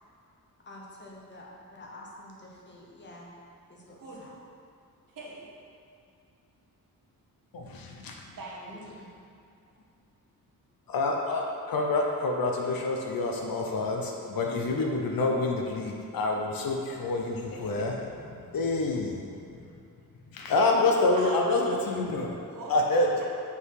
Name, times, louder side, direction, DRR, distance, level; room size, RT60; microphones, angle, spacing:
voice 1, 0.7-3.3 3.7-4.3 8.7-9.1, left 1 dB, 30° left, -3 dB, 0.9 m, -48 dB
voice 2, 5.1-5.5 8.4-8.8 20.5-21.4 22.5-23.2, right 2 dB, 70° right, -4 dB, 1.3 m, -41 dB
voice 3, 7.5-8.2 10.9-18.0 18.3-19.2 20.3-22.3 22.7-23.1, left 2 dB, 75° left, 1 dB, 0.8 m, -27 dB
5.7 x 4.1 x 4.7 m, 2.6 s
wide cardioid pair, 170°, 35 cm